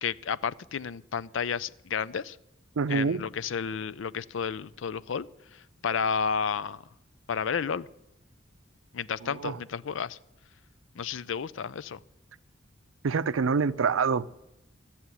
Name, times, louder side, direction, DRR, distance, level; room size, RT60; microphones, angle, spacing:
voice 1, 0.0-2.4 2.9-6.8 7.3-7.9 8.9-10.2 11.0-12.0, left 6 dB, 75° left, 0.4 m, -32 dB
voice 2, 2.8-3.2 9.2-9.6 13.0-14.3, right 5 dB, 90° right, 0.5 m, -26 dB
14.0 x 7.2 x 9.6 m
head